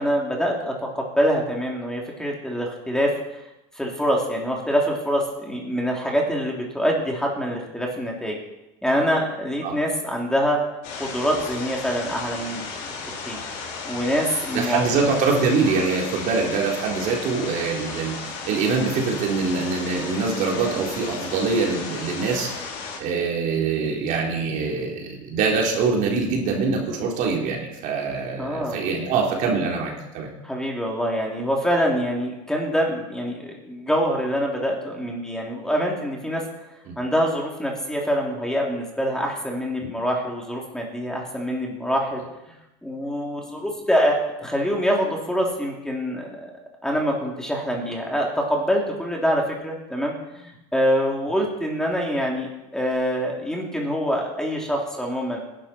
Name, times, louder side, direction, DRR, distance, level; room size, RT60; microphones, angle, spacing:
voice 1, 0.0-3.1 3.7-8.4 8.8-10.6 11.0-12.6 13.2-13.4 13.8-14.8 28.4-28.8 30.4-36.4 37.0-42.2 42.8-46.5 46.8-55.4, equal, 5° left, -1 dB, 3.1 m, -25 dB
sound 1, 10.8-23.0, left 4 dB, 60° left, 4.8 m, -34 dB
voice 2, 14.5-22.5 23.0-30.3 36.9-37.0, right 4 dB, 55° right, -1 dB, 3.6 m, -24 dB
18.5 x 11.5 x 4.4 m, 0.93 s
supercardioid pair, 115°, 16 cm